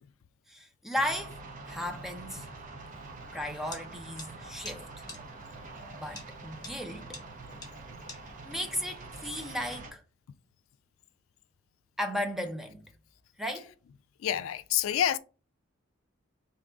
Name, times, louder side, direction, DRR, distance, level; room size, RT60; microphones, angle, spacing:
voice 1, 0.5-1.4 1.7-2.5 3.3-5.1 5.9-7.2 8.4-10.0 12.0-12.9 13.4-13.7, equal, ahead, 0.5 m, -35 dB
sound 1, 1.0-9.9, right 3 dB, 40° right, 0.7 m, -45 dB
sound 2, 3.7-3.8 4.2-4.3 4.7-4.8 5.1-5.2 6.2-6.3 6.6-6.7 7.1-7.2 7.6-7.7 8.1-8.2, left 3 dB, 20° left, 1.0 m, -42 dB
voice 2, 7.5-8.0 14.2-15.2, left 10 dB, 80° left, 0.3 m, -29 dB
3.7 x 2.7 x 3.4 m
head